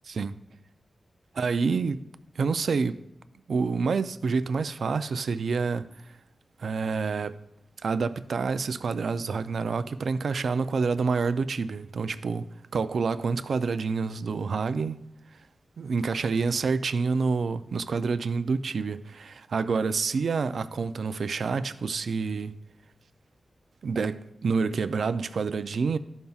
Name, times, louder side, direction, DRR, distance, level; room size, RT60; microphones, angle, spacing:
voice 1, 1.3-2.0 2.4-3.0 3.5-5.9 6.6-7.4 7.8-15.0 15.8-22.5 23.8-26.0, right 4 dB, 75° right, 0.3 m, -28 dB
13.0 x 5.4 x 2.3 m
wide cardioid pair, 130°, 0 cm